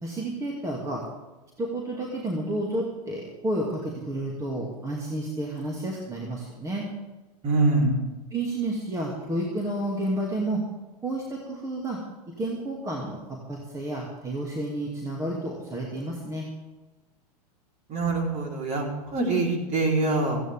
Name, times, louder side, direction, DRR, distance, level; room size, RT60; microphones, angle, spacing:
voice 1, 0.0-1.0 1.6-6.9 8.3-10.6 11.0-12.0 12.3-16.5, right 1 dB, 15° right, -2 dB, 2.5 m, -31 dB
voice 2, 7.4-8.0 17.9-20.4, right 2 dB, 35° right, 0 dB, 4.3 m, -24 dB
18.0 x 15.5 x 3.7 m, 1.1 s
figure-of-eight pair, 95°, 21 cm